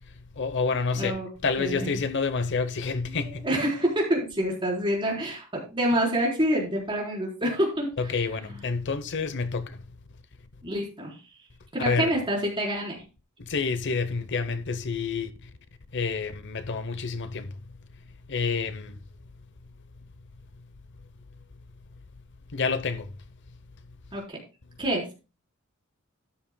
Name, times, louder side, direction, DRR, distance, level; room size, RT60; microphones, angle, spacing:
voice 1, 0.4-3.5 8.0-9.8 11.8-12.1 13.4-15.5 15.9-17.6 18.3-19.0 22.5-23.1, left 4 dB, 55° left, 0.8 m, -28 dB
voice 2, 1.0-1.3 1.6-2.0 3.1-7.9 10.6-11.1 11.7-13.0 24.1-24.4 24.8-25.0, right 1 dB, 25° right, 4.0 m, -27 dB
12.5 x 10.0 x 2.2 m
head